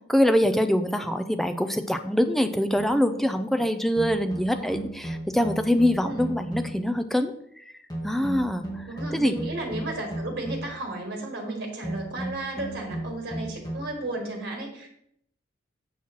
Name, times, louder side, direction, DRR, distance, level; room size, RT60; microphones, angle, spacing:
voice 1, 0.1-7.6 8.0-8.9 9.1-9.3, equal, ahead, 8 dB, 0.3 m, -24 dB
sound 1, 2.7-3.0 4.0-7.0 7.9-10.9 11.8-14.0, right 1 dB, 20° left, 1.3 m, -35 dB
voice 2, 4.5-4.8 6.0-6.3 8.8-14.9, right 2 dB, 55° right, 0 dB, 1.6 m, -34 dB
7.1 x 6.1 x 2.9 m, 0.72 s
head